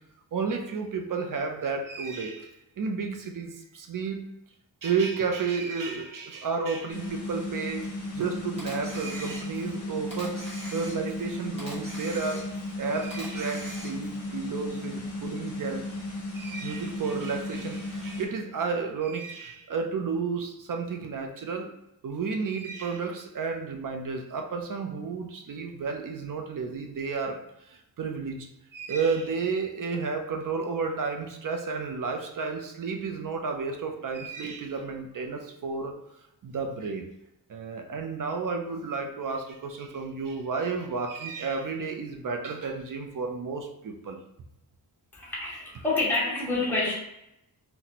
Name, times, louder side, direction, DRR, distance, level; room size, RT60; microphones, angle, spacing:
voice 1, 0.3-4.2 4.8-10.4 10.7-12.5 12.8-15.9 16.3-21.7 22.0-27.4 27.7-28.5 28.7-36.0 36.4-37.0 37.5-44.2, right 5 dB, 55° right, 4 dB, 0.5 m, -32 dB
sound 1, 6.9-18.3, left 2 dB, 45° left, 0.7 m, -35 dB
Camera, 8.6-9.7 10.1-11.2 11.6-12.7 13.1-14.2, equal, 15° right, 1.1 m, -42 dB
voice 2, 45.1-46.9, left 2 dB, 5° left, -6 dB, 0.8 m, -27 dB
4.0 x 2.1 x 2.8 m, 0.84 s
wide cardioid pair, 160°, 40 cm